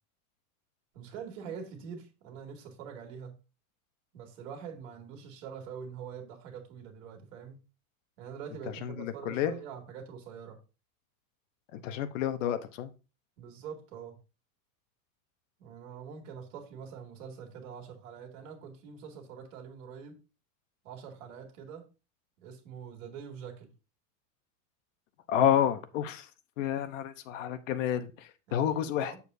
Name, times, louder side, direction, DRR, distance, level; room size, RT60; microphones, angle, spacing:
voice 1, 0.9-3.3 4.1-7.6 8.2-10.6 13.4-14.2 15.6-20.2 20.8-21.9 22.4-23.7 28.5-29.2, right 7 dB, 60° right, 2.4 m, -44 dB
voice 2, 8.8-9.5 11.7-12.9 25.3-26.3 26.6-29.1, left 10 dB, 60° left, 0.9 m, -30 dB
8.3 x 7.0 x 2.6 m
supercardioid pair, 170°, 44 cm